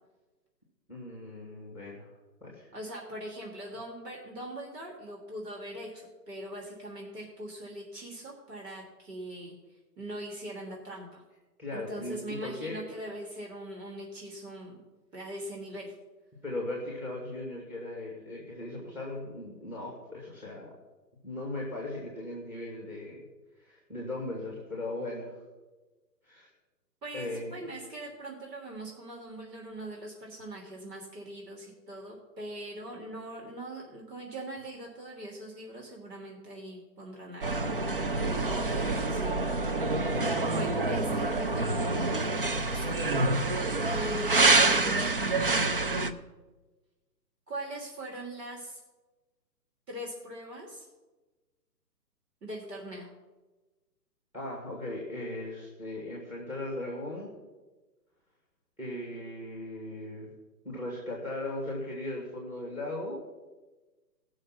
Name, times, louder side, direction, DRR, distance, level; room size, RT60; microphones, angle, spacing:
voice 1, 0.9-2.1 2.4-2.7 11.6-12.8 16.4-20.7 21.2-23.2 23.6-25.3 26.2-26.5 27.1-27.6 40.1-40.5 43.0-43.2 54.3-57.3 58.8-60.3 60.6-63.2, left 1 dB, 5° right, -2 dB, 1.9 m, -38 dB
voice 2, 2.7-11.2 11.7-14.8 15.1-15.9 27.0-37.5 38.3-39.8 40.5-41.8 42.7-42.9 43.9-45.2 47.5-48.8 49.9-50.8 52.4-53.1, right 1 dB, 70° right, -1 dB, 3.2 m, -41 dB
sound 1, 37.4-46.1, right 2 dB, 35° right, 0.4 m, -27 dB
17.5 x 6.4 x 6.0 m, 1.2 s
hypercardioid pair, 150°, 50 cm